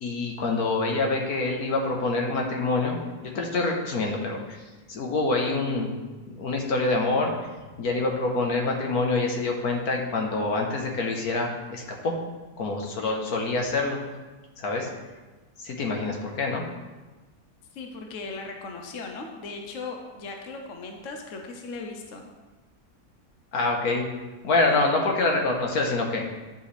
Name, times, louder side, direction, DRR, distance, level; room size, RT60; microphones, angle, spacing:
voice 1, 0.0-3.0 3.3-4.6 4.9-5.9 6.3-7.3 7.8-12.1 12.6-14.0 14.6-14.9 15.6-16.6 23.5-24.0 24.4-26.3, left 3 dB, 75° left, 1 dB, 1.7 m, -26 dB
voice 2, 17.7-22.2, left 3 dB, 60° left, 2 dB, 1.2 m, -38 dB
10.0 x 7.7 x 3.4 m, 1.2 s
omnidirectional pair, 1.6 m